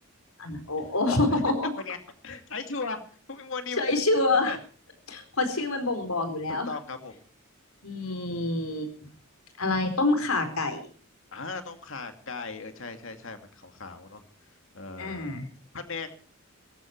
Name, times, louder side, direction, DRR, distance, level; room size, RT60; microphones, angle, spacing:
voice 1, 0.4-1.7 3.8-4.6 5.1-6.7 7.8-8.9 9.6-10.9 15.0-15.5, left 2 dB, 85° left, 7 dB, 4.4 m, -26 dB
voice 2, 1.3-2.0 2.2-3.0 3.3-3.8 4.5-4.6 6.7-7.2 11.3-14.2 14.7-15.3 15.7-16.1, left 4 dB, 65° left, 7 dB, 2.4 m, -37 dB
19.0 x 14.5 x 4.6 m, 0.43 s
head